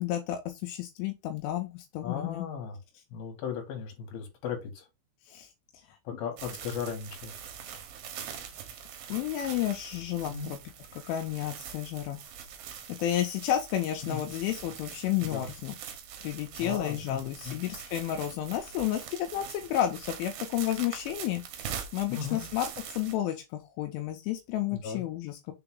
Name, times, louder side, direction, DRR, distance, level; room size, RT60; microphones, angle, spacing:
voice 1, 0.0-2.5 5.3-5.5 9.1-10.6 11.1-12.2 13.0-15.8 16.2-22.7 23.0-25.5, left 12 dB, 85° left, 3.1 m, -31 dB
voice 2, 2.0-2.8 3.1-4.9 6.0-7.3 10.3-10.5 14.0-14.3 15.2-15.5 16.6-17.2 17.5-17.6 22.1-22.5 24.7-25.0, left 7 dB, 55° left, 3.4 m, -36 dB
sound 1, 6.4-23.2, right 8 dB, 70° right, 2.3 m, -43 dB
6.9 x 3.8 x 3.7 m
omnidirectional pair, 5.6 m